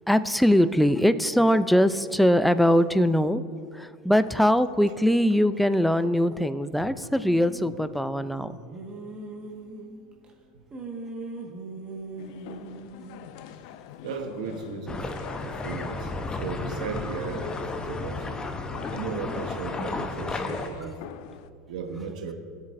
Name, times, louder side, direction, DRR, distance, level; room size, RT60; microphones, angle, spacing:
voice 1, 0.1-3.4 3.7-8.5 20.3-20.4 20.8-20.9, equal, ahead, 14 dB, 0.4 m, -22 dB
sound 1, 7.2-7.9 8.5-10.3 10.7-13.2, right 3 dB, 25° right, 1.5 m, -40 dB
sound 2, 12.2-21.5, left 10 dB, 65° left, 0.4 m, -46 dB
voice 2, 14.0-15.1 15.4-16.1 16.4-17.6 17.8-18.4 18.9-20.9 21.7-22.3, right 5 dB, 80° right, 5 dB, 1.1 m, -35 dB
sound 3, 14.9-20.7, left 3 dB, 20° left, 0.8 m, -33 dB
17.0 x 7.2 x 2.6 m, 2.2 s
hypercardioid pair, 90°, 4 cm